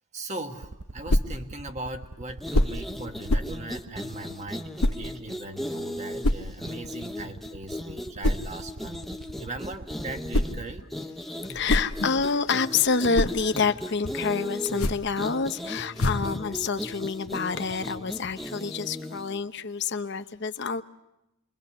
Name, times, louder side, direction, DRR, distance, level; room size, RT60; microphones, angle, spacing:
voice 1, 0.1-10.8, right 2 dB, 30° right, 5 dB, 1.5 m, -39 dB
sound 1, 0.6-10.8, right 2 dB, 70° right, 0.9 m, -41 dB
sound 2, 1.1-1.4 2.5-2.8 3.3-3.6 4.8-5.0 6.2-6.5 8.2-8.5 10.0-10.6 11.4-12.4 12.8-13.4 14.6-15.1 16.0-16.3, left 1 dB, 90° left, 1.1 m, -25 dB
sound 3, 2.3-19.4, left 1 dB, ahead, 0.9 m, -37 dB
voice 2, 11.4-20.8, left 5 dB, 50° left, 9 dB, 0.8 m, -27 dB
27.5 x 23.0 x 6.8 m, 0.89 s
head